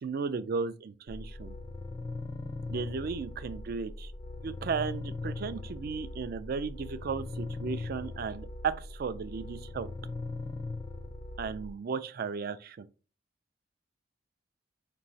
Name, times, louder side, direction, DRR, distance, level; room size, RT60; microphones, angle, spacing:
voice 1, 0.0-1.6 2.7-4.1 4.4-9.9 11.4-12.9, right 5 dB, 55° right, 0.4 m, -35 dB
sound 1, 1.1-11.7, left 2 dB, 20° left, 0.4 m, -40 dB
4.5 x 3.0 x 2.7 m
head